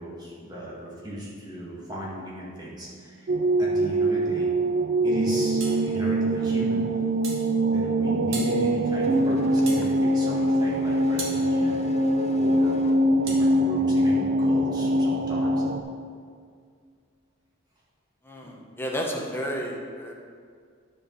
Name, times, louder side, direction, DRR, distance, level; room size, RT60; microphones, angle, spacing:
voice 1, 0.0-3.3 3.6-4.5 5.0-6.8 7.7-11.8 12.4-12.8 13.1-15.5, equal, 20° right, -6 dB, 2.0 m, -37 dB
sound 1, 3.3-15.8, right 1 dB, 50° right, 0.5 m, -23 dB
sound 2, 5.6-5.8 7.2-7.5 8.3-8.6 9.6-9.9 11.2-11.4 13.3-13.4, right 3 dB, 80° right, 1.7 m, -35 dB
Race car auto racing / Accelerating revving vroom, 8.4-13.7, left 4 dB, 30° left, 0.4 m, -41 dB
voice 2, 18.3-20.1, equal, 10° left, -1 dB, 1.0 m, -32 dB
9.8 x 4.7 x 5.5 m, 2.1 s
head